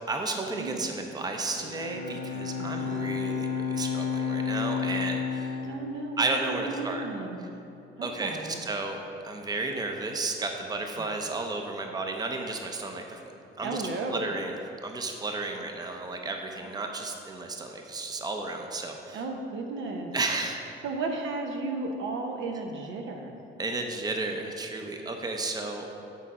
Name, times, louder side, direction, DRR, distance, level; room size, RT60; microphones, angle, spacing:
voice 1, 0.1-5.6 6.2-7.1 8.0-9.0 9.2-13.2 13.6-13.8 14.1-14.5 14.8-19.2 20.1-20.6 23.6-25.9, right 3 dB, 20° right, 3 dB, 0.7 m, -33 dB
Bowed string instrument, 1.3-6.7, left 6 dB, 90° left, 1.0 m, -32 dB
voice 2, 2.6-3.2 5.6-7.4 8.0-8.6 11.0-11.1 13.6-14.3 16.6-16.7 19.1-20.1 20.8-23.4, right 3 dB, 75° right, 3 dB, 0.9 m, -34 dB
8.3 x 4.1 x 4.8 m, 2.8 s
cardioid pair, 90°, 20 cm